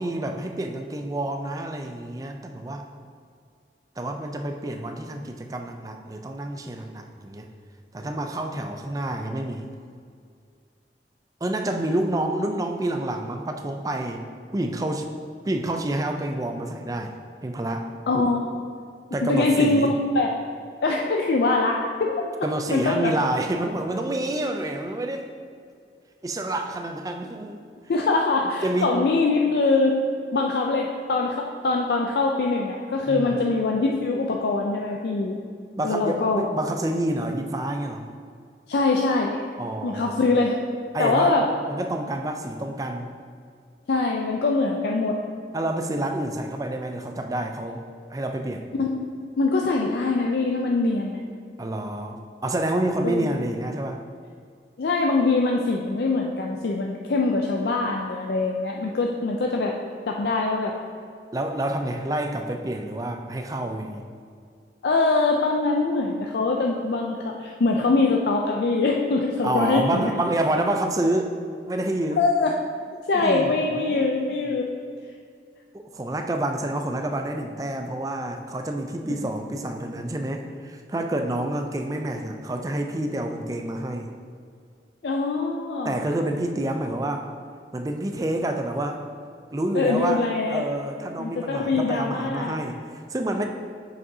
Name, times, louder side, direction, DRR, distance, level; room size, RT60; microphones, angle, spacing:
voice 1, 0.0-2.8 4.0-7.5 7.9-9.7 11.4-14.2 14.5-15.1 15.5-17.1 17.4-17.9 19.1-19.9 22.4-25.3 26.2-27.7 28.6-28.9 33.1-33.6 35.8-38.1 39.6-40.2 40.9-41.4 41.7-43.1 45.5-47.8 48.1-48.7 51.6-54.0 61.3-64.0 69.4-71.4 71.7-72.3 73.2-74.1 75.7-84.1 85.8-87.3 87.7-89.0 89.5-93.5, right 1 dB, 20° right, 4 dB, 0.4 m, -28 dB
voice 2, 18.1-18.6 19.2-20.3 20.8-22.2 22.7-23.1 27.9-30.0 30.3-35.3 35.8-36.4 38.7-39.4 39.8-40.6 41.0-41.5 43.9-45.2 48.7-49.1 49.4-51.2 53.0-53.4 54.8-59.7 60.0-60.7 64.8-70.1 72.2-72.5 73.1-74.6 79.1-79.2 85.0-85.9 89.7-90.6 91.2-92.6, left 3 dB, 65° left, 0 dB, 0.4 m, -23 dB
7.6 x 6.0 x 2.7 m, 2.2 s
head